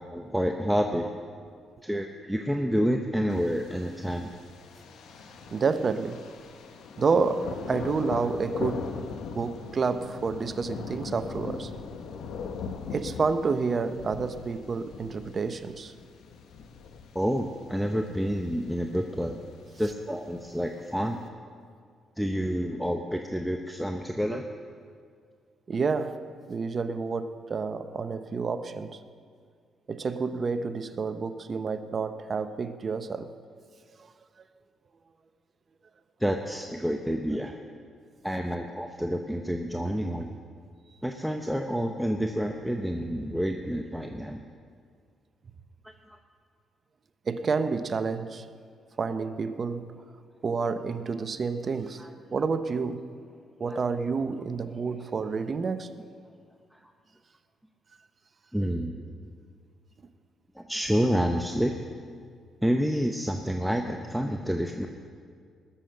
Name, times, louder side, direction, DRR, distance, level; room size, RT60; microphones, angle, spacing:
voice 1, 0.1-1.1 1.8-4.3 17.1-19.4 19.8-21.2 22.2-24.5 36.2-37.6 38.2-40.4 41.0-44.4 45.8-45.9 52.0-52.1 54.8-54.9 56.7-56.8 58.5-59.0 60.6-61.7 62.6-64.9, equal, ahead, 0.8 m, -29 dB
Thunder, 3.3-21.3, left 5 dB, 75° left, 1.0 m, -41 dB
voice 2, 5.5-6.3 7.0-9.1 9.3-11.7 12.9-15.9 25.7-29.0 29.9-33.4 47.3-48.5 49.0-49.9 50.4-53.1 53.6-55.9, right 4 dB, 40° right, 0.8 m, -29 dB
20.5 x 7.1 x 6.5 m
cardioid pair, 90°, 0 cm